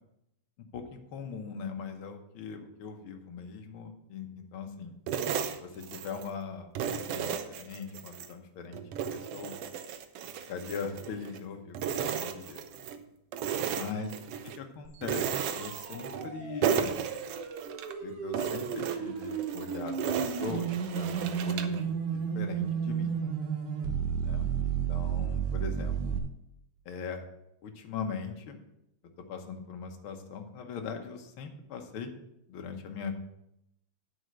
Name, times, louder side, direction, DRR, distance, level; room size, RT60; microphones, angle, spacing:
voice 1, 0.7-4.9 5.6-9.6 10.5-11.8 12.2-12.6 13.7-14.2 14.4-17.0 18.0-23.1 24.2-26.0 26.8-27.2 27.6-28.6 29.2-32.1 32.5-33.1, left 5 dB, 65° left, 5 dB, 1.3 m, -40 dB
sound 1, 5.1-6.3 6.8-8.3 8.7-11.4 11.7-13.0 13.3-14.6 15.0-16.3 16.6-17.9 18.3-21.8, right 8 dB, 90° right, 1.3 m, -34 dB
sound 2, 14.9-26.2, right 7 dB, 70° right, 2.5 m, -33 dB
9.8 x 5.0 x 7.8 m, 0.82 s
omnidirectional pair, 3.7 m